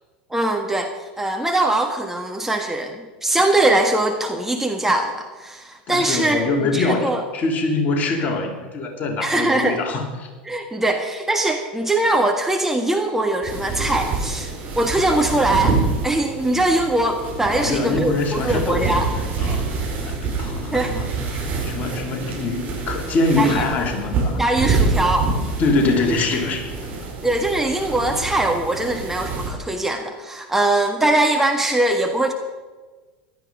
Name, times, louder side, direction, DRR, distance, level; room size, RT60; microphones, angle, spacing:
voice 1, 0.3-7.2 9.2-9.8 10.5-15.8 16.0-19.1 20.7-21.2 23.4-23.6 24.4-25.3 27.2-32.3, right 2 dB, 5° right, 3 dB, 1.6 m, -21 dB
voice 2, 5.9-10.3 17.5-19.6 20.0-21.1 21.5-24.4 25.6-26.7, left 3 dB, 35° left, 2 dB, 3.1 m, -23 dB
sound 1, 13.4-29.5, right 3 dB, 35° right, 5.1 m, -26 dB
16.0 x 12.0 x 5.2 m, 1.3 s
figure-of-eight pair, 80°, 5 cm